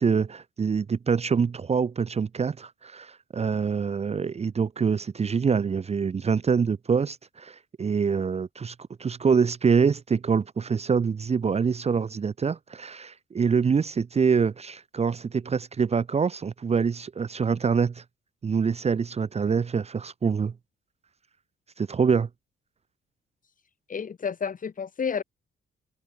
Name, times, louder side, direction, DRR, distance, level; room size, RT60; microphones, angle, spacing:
voice 1, 0.0-8.7 9.0-18.0 18.4-20.5 21.8-22.3, right 6 dB, 30° right, 0.8 m, -25 dB
voice 2, 23.9-25.2, left 6 dB, 40° left, 3.8 m, -30 dB
cardioid pair, 90°, 20 cm